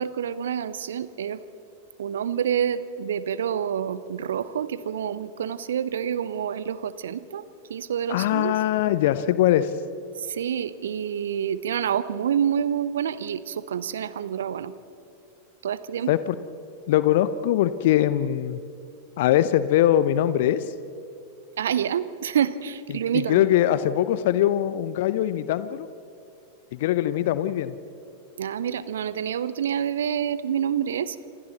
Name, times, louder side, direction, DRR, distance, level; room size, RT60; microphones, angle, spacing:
voice 1, 0.0-1.4 2.0-7.4 7.7-8.6 10.2-14.7 15.6-16.1 21.6-23.5 28.4-31.2, right 8 dB, 65° right, 16 dB, 0.9 m, -27 dB
voice 2, 8.1-9.7 16.1-16.3 16.9-18.6 19.2-20.6 23.1-25.9 26.7-27.7, left 12 dB, 55° left, 14 dB, 0.8 m, -22 dB
27.0 x 27.0 x 4.1 m, 2.8 s
figure-of-eight pair, 90°, 0 cm